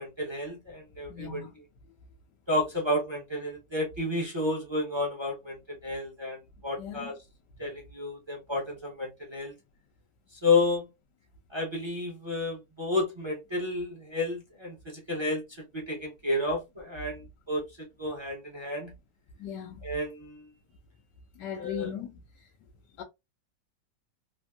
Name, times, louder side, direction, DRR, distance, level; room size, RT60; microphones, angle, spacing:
voice 1, 0.0-1.4 2.5-7.2 7.6-9.5 10.4-10.9 11.5-15.4 15.7-18.9 19.8-20.5 21.6-21.9, left 2 dB, 25° right, 0.6 m, -31 dB
voice 2, 1.1-1.5 6.8-7.1 19.4-19.8 21.4-22.2 23.0-23.1, left 7 dB, 90° left, 1.2 m, -38 dB
3.4 x 2.5 x 2.3 m
omnidirectional pair, 1.8 m